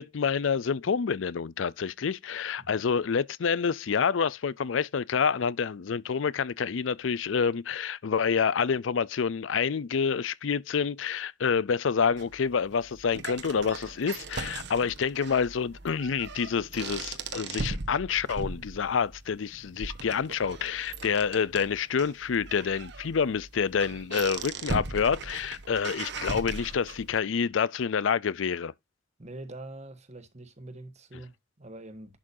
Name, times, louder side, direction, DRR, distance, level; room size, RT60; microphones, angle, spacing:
voice 1, 0.0-28.7, left 6 dB, 85° left, 0.5 m, -28 dB
sound 1, 12.2-27.2, right 3 dB, 65° right, 1.2 m, -39 dB
voice 2, 29.2-32.2, right 2 dB, 35° right, 1.4 m, -44 dB
11.0 x 6.1 x 2.7 m
head